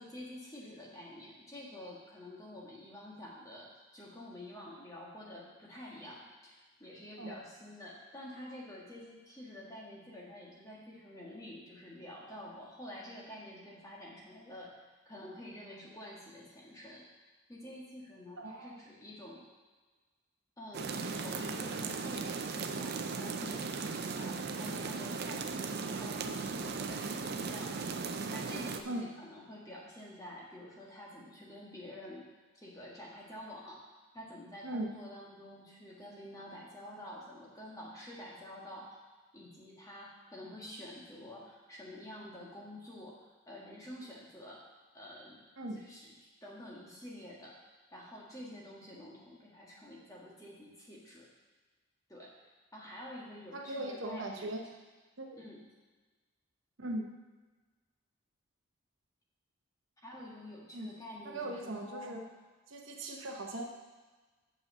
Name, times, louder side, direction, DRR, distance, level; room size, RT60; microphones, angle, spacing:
voice 1, 0.0-17.1 17.5-19.5 20.6-23.7 24.2-32.3 32.5-33.8 34.1-39.0 39.3-44.7 44.9-45.4 45.7-46.1 46.4-47.6 47.9-51.3 52.1-52.4 52.7-54.5 55.3-55.6 60.0-62.2, left 1 dB, 15° left, -4 dB, 1.6 m, -48 dB
voice 2, 18.4-18.8 28.8-29.1 34.6-34.9 45.6-45.8 53.5-54.6 55.2-55.4 56.8-57.1 60.7-60.9 61.2-62.2 62.7-63.6, right 1 dB, 65° right, 1 dB, 0.9 m, -39 dB
sound 1, 20.7-28.8, right 4 dB, 45° right, 0.5 m, -37 dB
6.9 x 5.5 x 6.7 m, 1.3 s
head